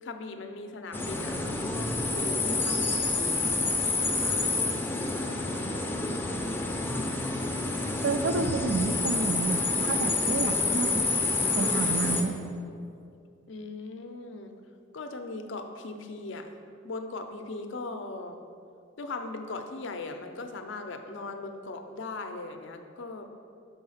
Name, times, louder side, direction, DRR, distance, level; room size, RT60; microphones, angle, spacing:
voice 1, 0.0-3.3 13.5-14.5 14.9-16.5 16.8-18.4 19.0-23.3, left 3 dB, 65° left, 6 dB, 0.5 m, -39 dB
sound 1, 0.9-12.2, left 3 dB, 10° left, 0.5 m, -28 dB
voice 2, 8.0-11.1 11.6-12.4, right 4 dB, 65° right, 9 dB, 0.4 m, -30 dB
5.5 x 4.6 x 5.6 m, 2.4 s
head